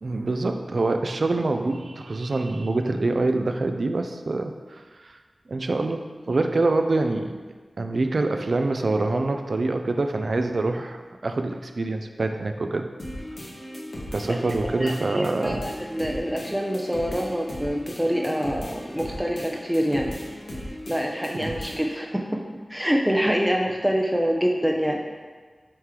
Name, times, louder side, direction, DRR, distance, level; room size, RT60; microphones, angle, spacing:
voice 1, 0.0-5.2 5.5-7.4 7.8-12.9 14.1-15.6 21.4-21.5, right 2 dB, 70° right, 6 dB, 0.4 m, -25 dB
sound 1, 13.0-22.0, equal, 80° left, 1.3 m, -37 dB
voice 2, 14.7-20.1 20.9-22.4 22.7-25.0, equal, 5° right, 0 dB, 0.7 m, -25 dB
8.6 x 3.1 x 3.7 m, 1.4 s
wide cardioid pair, 60°, 0 cm